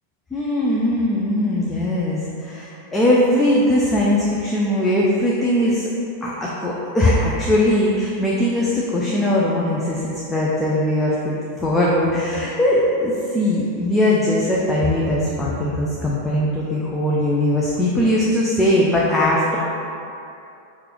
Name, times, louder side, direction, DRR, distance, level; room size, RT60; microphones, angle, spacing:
voice 1, 0.3-5.9 6.2-11.3 11.6-19.6, left 1 dB, 10° left, -5 dB, 0.4 m, -20 dB
4.5 x 2.5 x 3.1 m, 2.7 s
figure-of-eight pair, 90°, 0 cm